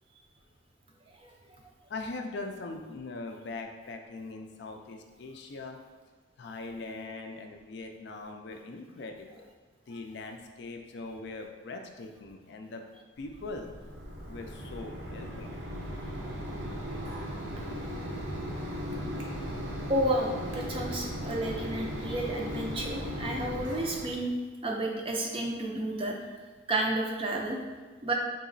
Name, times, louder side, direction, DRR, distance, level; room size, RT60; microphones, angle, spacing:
voice 1, 1.9-5.8 6.4-9.5 9.9-12.8 13.2-13.7 14.3-15.6 19.5-19.6, left 3 dB, 60° left, 4 dB, 0.3 m, -41 dB
Mechanisms, 13.2-24.2, equal, 70° right, 0.7 m, -37 dB
voice 2, 19.9-24.3 24.6-27.6 28.0-28.1, right 1 dB, 30° right, 0 dB, 0.4 m, -31 dB
4.0 x 2.8 x 2.6 m, 1.4 s
head